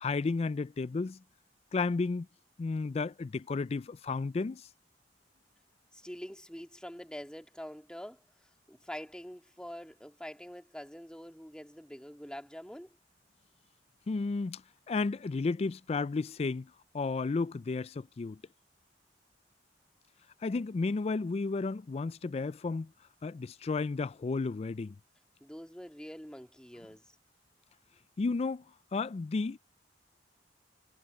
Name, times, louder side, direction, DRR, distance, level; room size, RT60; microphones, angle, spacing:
voice 1, 0.0-1.2 1.7-2.3 2.6-4.6 14.1-14.6 14.9-16.7 16.9-18.4 20.4-22.9 23.2-24.9 28.2-28.6 28.9-29.6, left 3 dB, 35° left, 0.3 m, -32 dB
voice 2, 5.9-12.9 25.4-27.2, equal, 5° left, 2.1 m, -45 dB
head